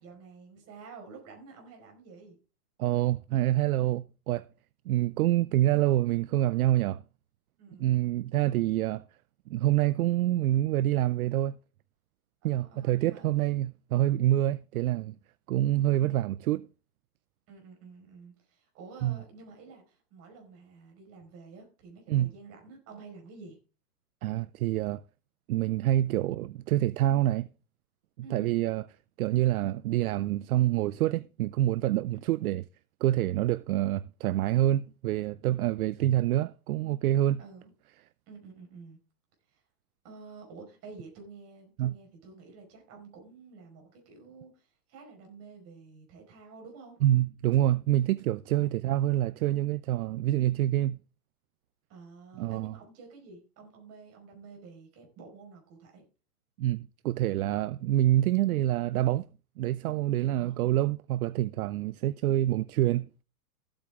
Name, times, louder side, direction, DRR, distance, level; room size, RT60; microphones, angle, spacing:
voice 1, 0.0-2.4 7.6-8.0 12.4-13.3 16.0-16.2 17.5-23.6 28.2-28.6 32.1-32.2 37.4-37.7 38.3-39.0 39.5-39.6 40.0-47.0 48.5-48.8 51.9-56.0 60.4-60.9, right 4 dB, 30° right, 5.0 m, -50 dB
voice 2, 2.8-4.5 4.9-7.0 7.8-9.0 9.5-11.6 12.4-15.2 15.5-16.6 19.0-19.2 22.1-22.3 24.2-25.0 25.5-27.5 28.3-28.8 29.2-32.6 33.0-37.4 41.8-42.0 47.0-51.0 52.4-52.7 56.6-59.3 59.6-63.1, right 14 dB, 70° right, 0.6 m, -26 dB
14.5 x 8.7 x 3.6 m
hypercardioid pair, 140°, 46 cm